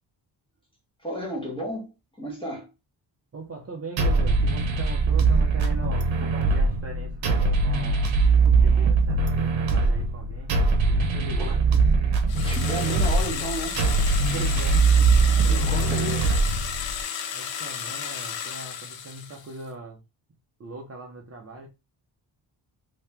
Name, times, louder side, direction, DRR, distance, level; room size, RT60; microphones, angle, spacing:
voice 1, 1.0-1.9 2.2-2.7 11.4-11.6 12.4-13.8 15.4-16.2, equal, 10° left, 1.2 m, -32 dB
voice 2, 3.3-8.0 8.6-10.6 10.9-11.6 14.2-14.9 15.2-16.3 17.3-20.0 20.6-21.7, right 3 dB, 35° right, 0.7 m, -39 dB
sound 1, 4.0-17.0, right 4 dB, 85° right, 0.8 m, -22 dB
sound 2, 12.3-19.6, left 8 dB, 80° left, 0.7 m, -33 dB
3.1 x 2.8 x 3.3 m
wide cardioid pair, 165°, 45 cm